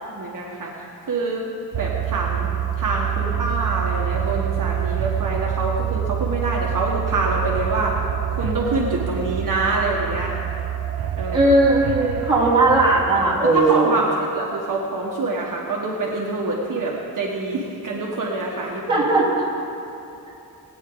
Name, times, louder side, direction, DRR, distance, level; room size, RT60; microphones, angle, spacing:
voice 1, 0.1-0.7 1.0-1.4 1.8-2.5 2.8-8.0 8.3-10.3 11.2-11.5 13.4-18.8, right 2 dB, 60° right, -3 dB, 1.5 m, -25 dB
sound 1, 1.7-13.3, right 10 dB, 80° right, 0.7 m, -26 dB
voice 2, 11.3-13.9 18.9-19.4, right 2 dB, 15° right, -8 dB, 2.9 m, -17 dB
20.5 x 9.3 x 3.9 m, 2.8 s
wide cardioid pair, 160°, 37 cm